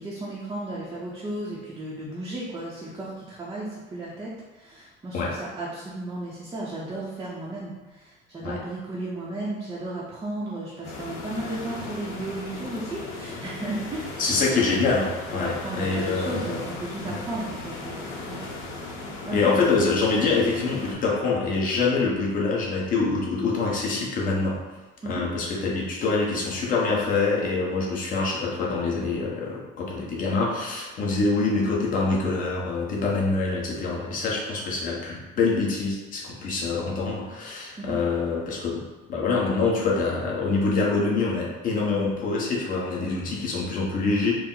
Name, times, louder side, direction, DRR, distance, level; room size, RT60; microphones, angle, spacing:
voice 1, 0.0-14.6 15.3-18.4 19.2-19.5 25.0-25.2 37.8-38.0, right 2 dB, 15° right, -6 dB, 0.6 m, -34 dB
sound 1, 10.8-20.9, left 2 dB, 70° left, 0.8 m, -37 dB
voice 2, 14.2-16.6 17.0-17.2 19.3-24.6 25.0-38.8 39.1-44.3, left 3 dB, 40° left, -3 dB, 0.9 m, -25 dB
4.6 x 2.0 x 3.8 m, 1.2 s
cardioid pair, 150°, 21 cm